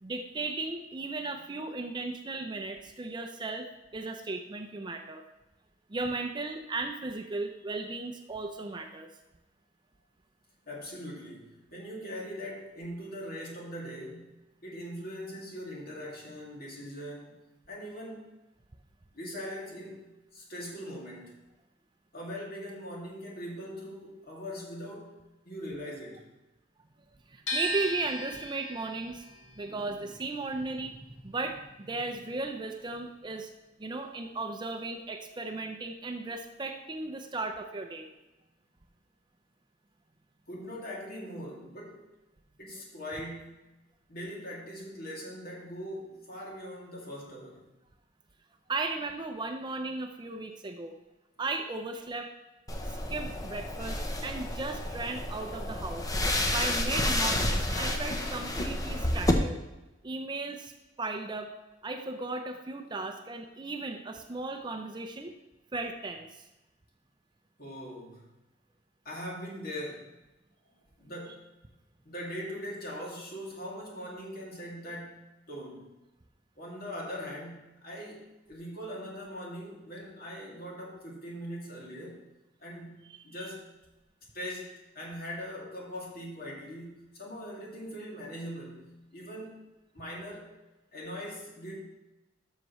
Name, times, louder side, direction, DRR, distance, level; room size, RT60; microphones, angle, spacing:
voice 1, 0.0-5.2 5.9-9.1 27.3-29.2 29.6-31.0 31.2-33.5 33.8-38.1 48.7-51.0 51.4-52.3 53.1-56.0 56.5-59.6 60.0-60.7 61.0-61.5 61.8-65.3 65.7-66.4 83.4-83.5, right 3 dB, 25° right, 5 dB, 0.5 m, -36 dB
voice 2, 10.7-17.4 17.7-18.3 19.1-21.4 22.1-25.2 25.4-26.2 40.5-42.1 42.6-43.7 44.1-47.7 67.6-68.3 69.0-70.1 71.0-71.6 72.0-75.9 76.6-82.2 82.6-83.7 84.3-89.6 89.9-90.5 90.9-91.8, equal, 50° left, -3 dB, 2.4 m, -41 dB
sound 1, 27.5-33.5 33.8-35.1, equal, 90° left, 1.7 m, -39 dB
sound 2, 52.7-59.3, left 1 dB, 20° left, 0.7 m, -30 dB
12.5 x 6.5 x 3.1 m, 1.0 s
head